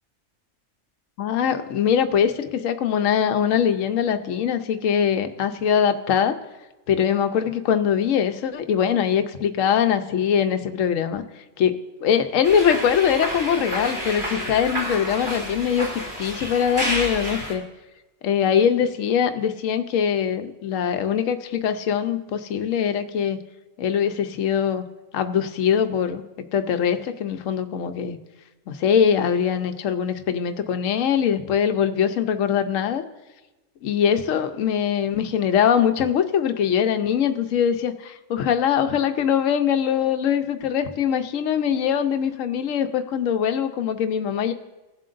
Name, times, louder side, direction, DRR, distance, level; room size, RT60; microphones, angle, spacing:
voice 1, 1.2-6.4 6.9-11.2 11.6-11.7 12.0-17.6 18.2-23.4 23.8-24.8 25.1-26.2 26.5-28.2 28.7-33.0 33.8-44.5, left 8 dB, 75° left, 9 dB, 1.0 m, -22 dB
sound 1, 12.4-17.5, equal, 25° right, 3.2 m, -30 dB
19.5 x 7.5 x 2.5 m, 1.1 s
omnidirectional pair, 1.4 m